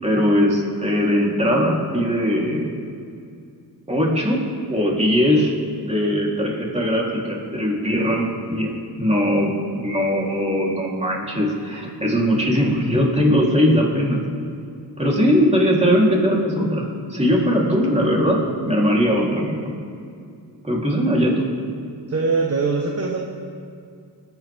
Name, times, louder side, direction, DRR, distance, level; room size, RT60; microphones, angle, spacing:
voice 1, 0.0-2.7 3.9-4.4 4.7-5.5 5.8-8.7 9.0-14.2 15.0-18.4 18.6-19.7 20.6-21.5, equal, 15° right, -3 dB, 3.7 m, -20 dB
voice 2, 22.1-23.2, right 4 dB, 35° right, 0 dB, 1.4 m, -22 dB
22.0 x 9.6 x 3.7 m, 2.4 s
cardioid pair, 80°, 43 cm